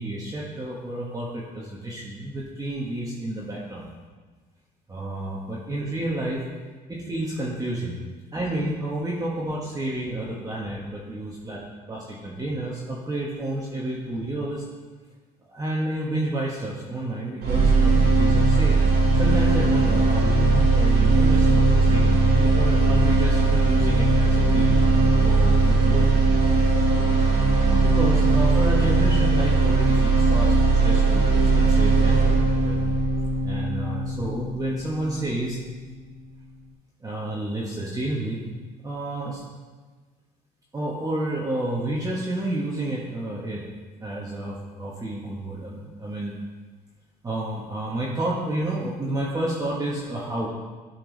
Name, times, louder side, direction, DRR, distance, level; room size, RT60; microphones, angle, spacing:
voice 1, 0.0-3.9 4.9-6.5 6.9-8.0 8.3-14.6 15.5-18.8 19.2-24.9 25.2-26.1 27.2-32.8 33.4-35.6 37.0-38.5 38.8-39.4 40.7-43.6 44.0-46.4 47.2-50.5, right 1 dB, 20° right, -4 dB, 1.3 m, -30 dB
sound 1, 17.4-35.4, right 3 dB, 75° right, 1.7 m, -19 dB
11.5 x 4.6 x 4.0 m, 1.4 s
cardioid pair, 110°, 17 cm